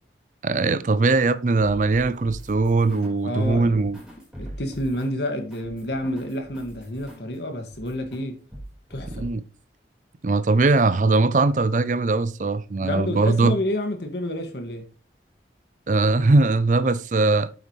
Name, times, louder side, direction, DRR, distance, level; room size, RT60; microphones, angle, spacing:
voice 1, 0.4-4.0 9.1-9.4 10.2-13.6 15.9-17.5, right 3 dB, 45° right, 0.4 m, -20 dB
sound 1, 1.5-3.2 3.4-7.3 7.7-8.2 8.5-9.3, right 1 dB, 5° right, 4.4 m, -42 dB
voice 2, 3.2-3.8 4.4-8.4 8.9-9.3 12.8-14.9, left 1 dB, 70° left, 1.9 m, -29 dB
8.8 x 7.9 x 3.2 m
head